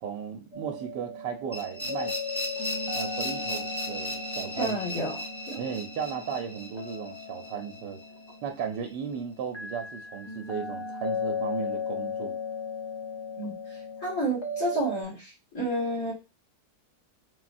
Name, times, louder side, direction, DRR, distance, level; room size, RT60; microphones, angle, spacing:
voice 1, 0.0-2.1 2.9-4.8 5.6-8.0 8.4-12.4, right 7 dB, 85° right, 1.3 m, -35 dB
sound 1, 0.5-15.0, left 4 dB, 30° left, 0.5 m, -37 dB
sound 2, 1.5-8.3, left 1 dB, 15° left, 0.9 m, -36 dB
voice 2, 4.6-5.6 13.4-16.1, right 1 dB, 50° left, 2.2 m, -31 dB
4.1 x 4.1 x 2.5 m
omnidirectional pair, 1.8 m